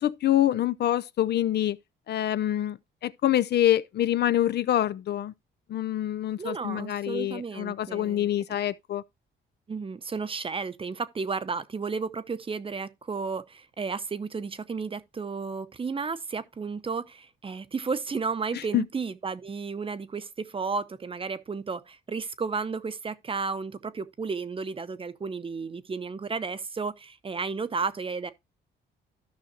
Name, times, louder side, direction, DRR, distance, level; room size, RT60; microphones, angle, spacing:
voice 1, 0.0-1.8 2.1-2.8 3.0-5.3 5.7-9.0 18.7-18.8, left 12 dB, 55° left, 0.4 m, -26 dB
voice 2, 6.4-8.4 9.7-28.3, right 4 dB, 25° right, 0.7 m, -33 dB
13.5 x 5.6 x 2.8 m
cardioid pair, 90°, 20 cm